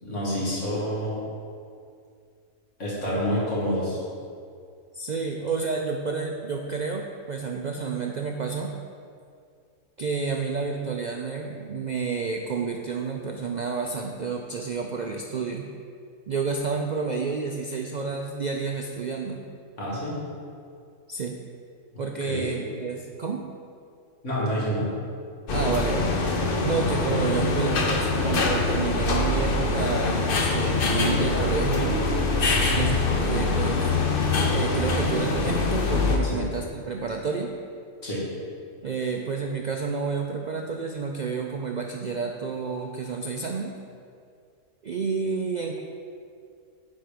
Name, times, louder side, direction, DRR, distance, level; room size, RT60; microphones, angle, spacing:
voice 1, 0.0-1.2 2.8-4.0 19.8-20.2 22.2-22.5 24.2-24.9 32.5-32.9 36.2-36.4 38.0-38.2, equal, 65° left, -6 dB, 2.4 m, -28 dB
voice 2, 4.9-8.7 10.0-15.7 16.3-19.4 21.1-21.3 22.0-23.4 25.5-26.2 26.6-32.0 32.7-33.9 34.5-37.5 38.8-43.7 44.8-45.8, right 5 dB, 75° right, 2 dB, 0.4 m, -30 dB
sound 1, 25.5-36.2, left 3 dB, 50° left, 0.9 m, -24 dB
9.5 x 4.6 x 5.0 m, 2.3 s
omnidirectional pair, 1.4 m